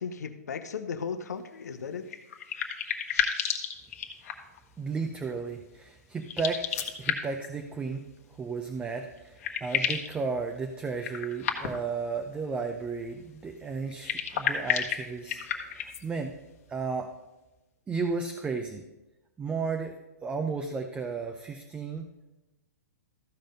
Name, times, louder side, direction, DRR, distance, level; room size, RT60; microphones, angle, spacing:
voice 1, 0.0-2.1, left 6 dB, 75° left, 10 dB, 0.9 m, -36 dB
sound 1, 2.1-4.6 6.2-7.5 8.8-8.9 9.2-10.1 11.0-12.0 13.9-16.0, left 8 dB, 55° left, 1.2 m, -31 dB
voice 2, 4.8-8.0 8.3-16.3 16.7-17.1 17.9-18.8 19.4-19.9 20.2-22.1, right 4 dB, 15° right, 4 dB, 0.7 m, -34 dB
14.0 x 5.1 x 5.3 m, 1.0 s
hypercardioid pair, 120°, 9 cm